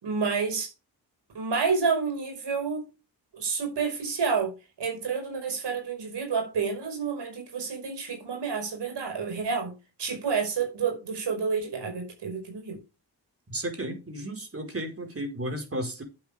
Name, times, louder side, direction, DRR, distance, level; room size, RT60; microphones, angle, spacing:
voice 1, 0.0-0.7 1.3-2.8 3.3-9.7 10.0-12.8, right 5 dB, 90° right, 5.3 m, -29 dB
voice 2, 13.5-16.0, right 1 dB, 35° right, 4.7 m, -33 dB
11.5 x 7.8 x 3.5 m
cardioid pair, 70°, 40 cm